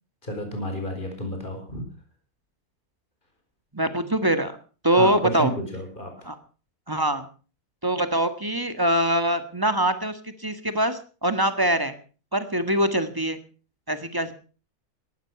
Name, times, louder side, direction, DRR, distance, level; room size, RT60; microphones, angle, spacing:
voice 1, 0.2-1.8 4.9-6.1, equal, 35° left, 3 dB, 4.8 m, -31 dB
voice 2, 3.7-4.5 4.8-5.5 6.2-6.4 6.9-7.3 7.8-11.9 12.3-13.4 13.9-14.3, right 1 dB, 15° right, 10 dB, 1.6 m, -23 dB
18.0 x 12.5 x 5.9 m, 0.39 s
omnidirectional pair, 1.6 m